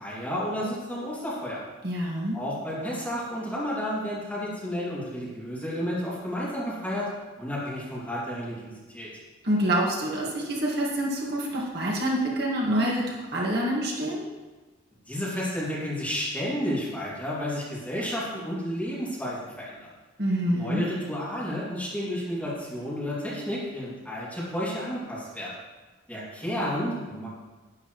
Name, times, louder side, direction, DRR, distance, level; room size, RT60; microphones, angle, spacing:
voice 1, 0.0-1.6 2.3-7.1 7.4-9.1 15.1-19.9 20.5-25.5 26.1-27.3, equal, 5° left, -8 dB, 2.4 m, -31 dB
voice 2, 1.8-2.4 9.4-14.2 20.2-20.8, right 1 dB, 50° right, -3 dB, 1.8 m, -26 dB
11.5 x 10.5 x 3.1 m, 1.2 s
head